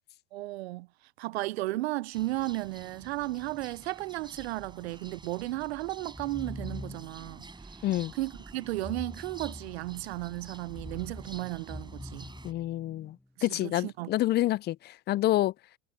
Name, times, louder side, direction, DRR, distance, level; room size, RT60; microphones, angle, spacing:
voice 1, 0.3-0.9 1.2-7.4 8.2-12.3 13.4-14.1, right 18 dB, 70° right, 0.8 m, -34 dB
sound 1, 2.1-12.5, right 3 dB, 15° right, 5.6 m, -49 dB
sound 2, 6.0-7.3 8.7-10.1 10.6-13.1, left 1 dB, 5° left, 1.3 m, -44 dB
voice 2, 7.8-8.1 12.4-15.5, left 15 dB, 30° left, 0.5 m, -28 dB
hypercardioid pair, 85°, 32 cm